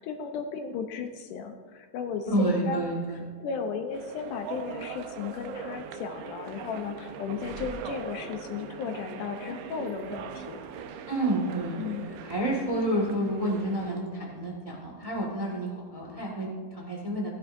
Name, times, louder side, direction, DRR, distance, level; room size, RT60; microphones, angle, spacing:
voice 1, 0.0-2.8 3.4-10.7 11.8-12.1, left 6 dB, 75° left, 4 dB, 2.2 m, -35 dB
voice 2, 2.3-3.2 11.1-17.3, right 1 dB, 35° right, -2 dB, 0.5 m, -29 dB
sound 1, 3.9-14.1, right 7 dB, 85° right, 2.4 m, -41 dB
16.5 x 10.0 x 2.6 m, 1.5 s
omnidirectional pair, 3.9 m